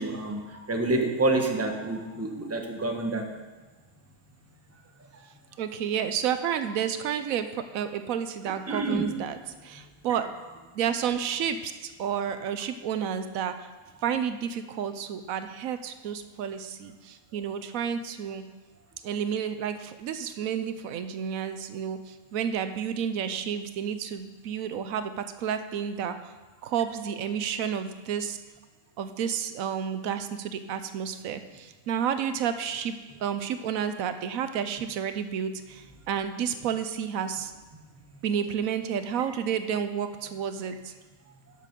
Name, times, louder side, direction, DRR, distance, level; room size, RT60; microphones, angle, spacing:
voice 1, 0.0-3.3 8.7-9.0, right 2 dB, 10° right, 3 dB, 1.0 m, -28 dB
voice 2, 5.6-10.3 10.7-13.7 14.0-18.4 19.0-26.3 26.6-28.4 29.0-37.5 38.2-40.9, right 8 dB, 85° right, 10 dB, 1.1 m, -31 dB
12.0 x 6.7 x 5.2 m, 1.3 s
omnidirectional pair, 1.4 m